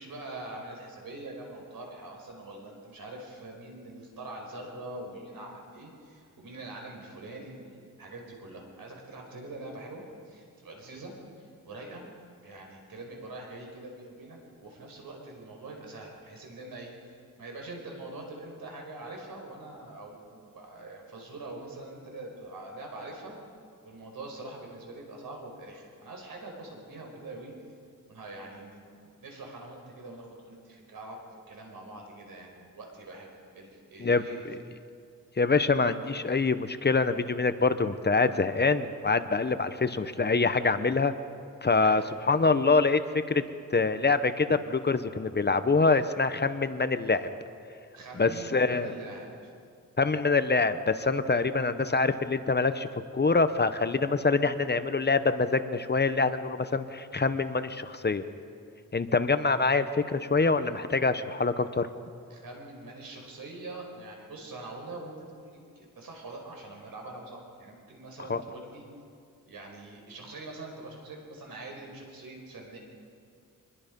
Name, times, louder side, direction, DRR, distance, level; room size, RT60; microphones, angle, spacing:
voice 1, 0.0-12.0 12.4-23.4 23.8-27.5 28.1-31.2 31.5-34.4 41.8-42.1 47.9-49.3 62.3-68.8 69.5-72.8, right 2 dB, 85° right, 1 dB, 5.1 m, -44 dB
voice 2, 35.4-41.1 41.6-43.0 43.3-43.4 43.7-47.3 48.2-48.9 50.0-52.9 53.1-58.2 58.9-61.9 68.3-68.4, left 4 dB, 30° left, 11 dB, 0.9 m, -25 dB
25.5 x 21.0 x 5.3 m, 2.4 s
wide cardioid pair, 105°, 34 cm